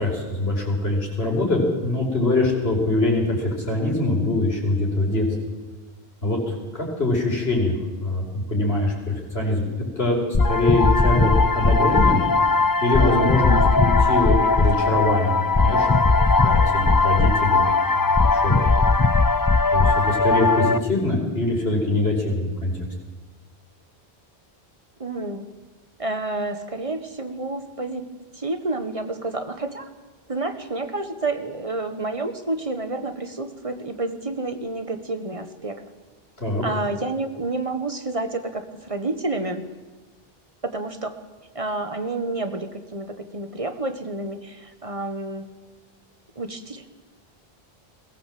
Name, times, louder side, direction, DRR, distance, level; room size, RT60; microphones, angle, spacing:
voice 1, 0.0-5.3 6.2-7.7 8.0-9.7 10.0-10.2 10.4-12.2 12.8-17.7 18.1-18.8 19.7-22.7 36.4-36.6, left 2 dB, 75° left, -1 dB, 5.3 m, -23 dB
sound 1, 10.3-20.8, left 3 dB, 25° left, 0.6 m, -18 dB
voice 2, 25.0-25.4 26.0-29.9 30.3-35.8 36.6-39.6 40.6-41.1 41.5-45.5 46.3-46.9, right 2 dB, 35° right, 8 dB, 1.6 m, -29 dB
21.5 x 16.0 x 7.7 m, 1.2 s
omnidirectional pair, 1.0 m